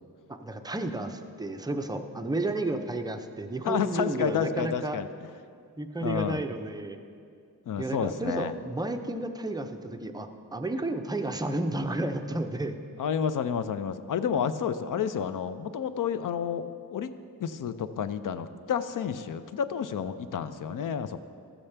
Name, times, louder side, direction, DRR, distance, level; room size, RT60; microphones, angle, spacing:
voice 1, 0.3-5.0 5.8-7.0 7.8-12.8, right 2 dB, 10° right, 6 dB, 0.5 m, -32 dB
voice 2, 3.6-5.1 6.0-6.4 7.7-8.5 13.0-21.2, left 7 dB, 60° left, 11 dB, 0.5 m, -30 dB
14.5 x 7.1 x 3.3 m, 2.3 s
wide cardioid pair, 125°, 37 cm